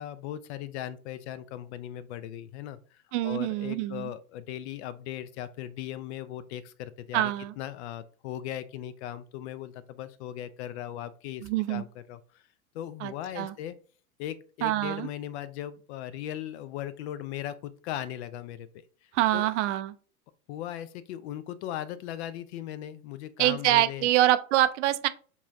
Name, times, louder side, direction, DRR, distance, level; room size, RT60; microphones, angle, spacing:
voice 1, 0.0-12.4 12.7-13.7 14.2-18.7 19.3-19.5 20.5-24.1, left 11 dB, 50° left, 0.6 m, -38 dB
voice 2, 3.1-4.1 7.1-7.5 11.4-11.8 13.0-13.5 14.6-15.1 19.1-19.9 23.4-25.1, right 14 dB, 55° right, 0.5 m, -25 dB
7.1 x 2.4 x 2.6 m
hypercardioid pair, 110°, 43 cm